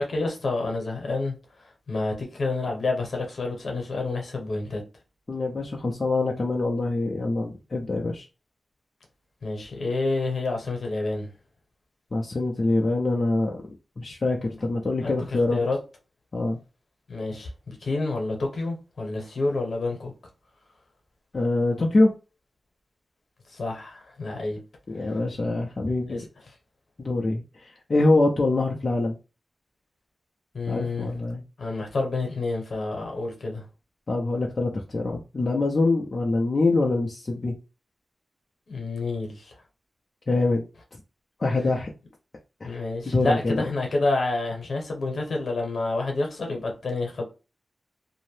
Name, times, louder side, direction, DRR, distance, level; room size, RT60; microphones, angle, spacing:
voice 1, 0.0-4.8 9.4-11.3 14.5-14.6 15.0-15.8 17.1-20.1 23.5-24.6 26.1-26.2 30.5-31.1 31.6-33.7 38.7-39.5 42.6-47.2, left 3 dB, 70° left, 1.0 m, -29 dB
voice 2, 5.3-8.3 12.1-13.6 14.0-15.6 16.3-16.6 21.3-22.1 24.9-26.2 27.0-29.2 30.7-31.4 34.1-37.5 40.3-40.6 41.4-41.9 42.6-42.8 43.1-43.7, left 2 dB, 50° left, 0.5 m, -24 dB
2.6 x 2.0 x 3.1 m
wide cardioid pair, 80°, 0 cm